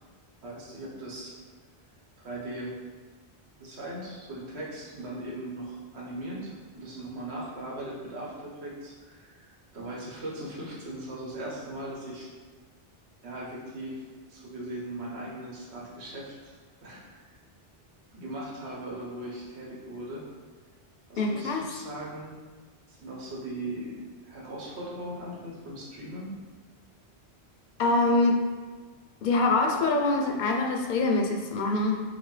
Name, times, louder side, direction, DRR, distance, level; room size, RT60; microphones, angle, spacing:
voice 1, 0.4-1.4 2.2-2.7 3.6-9.5 9.7-12.3 13.2-16.6 16.8-17.1 18.1-20.3 21.1-22.4 22.9-26.3, right 1 dB, 85° right, -4 dB, 1.2 m, -39 dB
voice 2, 21.2-21.6 27.8-28.4 29.2-32.0, left 2 dB, 60° left, 2 dB, 0.6 m, -24 dB
5.5 x 2.1 x 3.2 m, 1.4 s
omnidirectional pair, 1.1 m